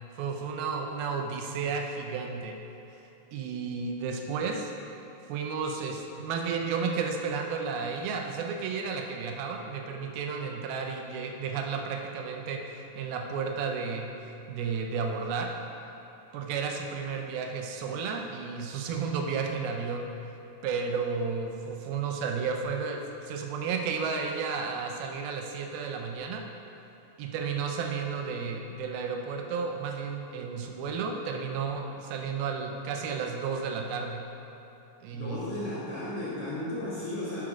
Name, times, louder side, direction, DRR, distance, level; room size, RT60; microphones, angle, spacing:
voice 1, 0.2-2.6 3.3-4.7 5.3-14.1 14.5-15.5 16.3-20.1 20.6-26.4 27.2-34.2 35.0-35.4, right 5 dB, 80° right, 2 dB, 2.5 m, -32 dB
voice 2, 35.1-37.4, left 1 dB, 45° left, -9 dB, 2.2 m, -34 dB
11.0 x 6.0 x 5.0 m, 2.9 s
omnidirectional pair, 4.5 m